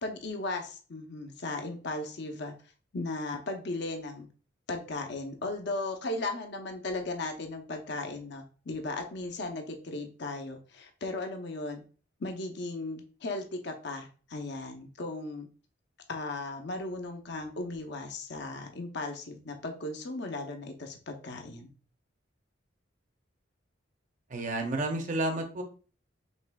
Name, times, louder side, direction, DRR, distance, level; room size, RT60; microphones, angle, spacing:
voice 1, 0.0-2.5 2.9-4.3 4.7-11.8 12.2-15.5 16.1-21.7, left 2 dB, 60° left, 4 dB, 0.7 m, -36 dB
voice 2, 24.3-25.6, right 2 dB, 40° right, 5 dB, 0.7 m, -31 dB
5.3 x 3.5 x 2.3 m, 0.39 s
head